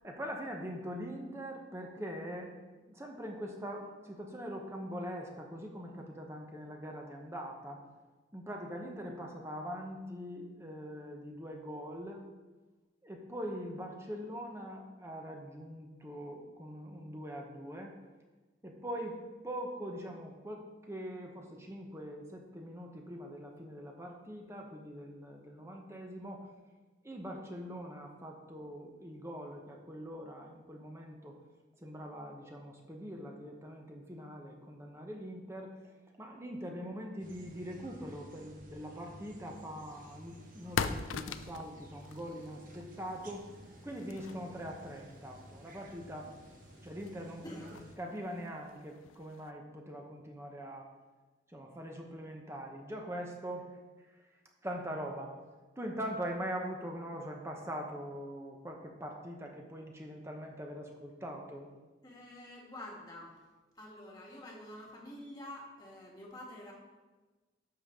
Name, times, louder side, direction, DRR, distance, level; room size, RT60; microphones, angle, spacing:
voice 1, 0.0-2.5 2.9-7.8 8.3-12.2 13.0-17.9 18.6-26.5 27.0-31.3 31.8-35.9 36.2-43.5 43.8-46.3 46.8-50.9 51.5-53.7 54.1-54.2 54.6-55.4 55.8-61.7, equal, 15° right, 1 dB, 1.0 m, -42 dB
sound 1, 37.2-48.0, equal, 45° right, 1.1 m, -54 dB
sound 2, 39.2-49.5, left 5 dB, 90° left, 0.5 m, -44 dB
voice 2, 62.0-63.3 63.8-66.7, left 1 dB, 20° left, -2 dB, 1.6 m, -47 dB
11.5 x 7.1 x 3.7 m, 1.2 s
head